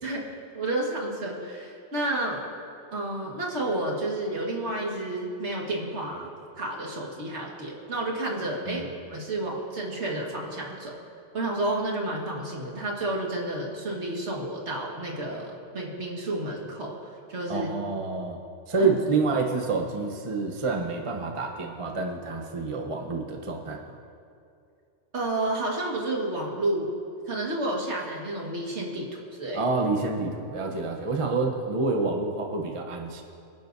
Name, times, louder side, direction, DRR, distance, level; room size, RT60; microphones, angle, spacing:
voice 1, 0.0-2.4 2.9-6.3 6.6-11.0 11.3-16.9 17.3-17.7 18.8-18.9 25.1-26.9 27.3-29.7, right 1 dB, 70° right, -1 dB, 2.0 m, -31 dB
voice 2, 17.5-18.4 18.7-24.0 29.5-33.2, right 3 dB, 30° right, 1 dB, 0.9 m, -28 dB
24.5 x 10.5 x 2.7 m, 2.5 s
omnidirectional pair, 1.2 m